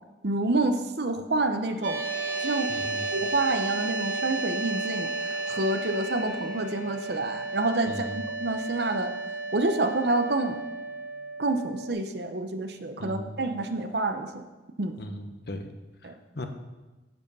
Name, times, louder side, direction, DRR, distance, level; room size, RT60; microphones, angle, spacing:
voice 1, 0.2-2.0 2.4-2.7 3.1-9.1 9.5-10.6 11.4-14.4 14.8-15.0 16.0-16.2, right 2 dB, 60° right, 8 dB, 0.8 m, -28 dB
sound 1, 1.7-8.7, left 4 dB, 85° left, 1.5 m, -44 dB
sound 2, 1.8-11.9, right 3 dB, 85° right, 1.3 m, -33 dB
voice 2, 2.7-3.1 7.8-8.2 13.0-13.6 15.0-15.7 16.0-16.5, left 1 dB, 60° left, 6 dB, 1.0 m, -38 dB
9.5 x 7.7 x 5.5 m, 1.2 s
head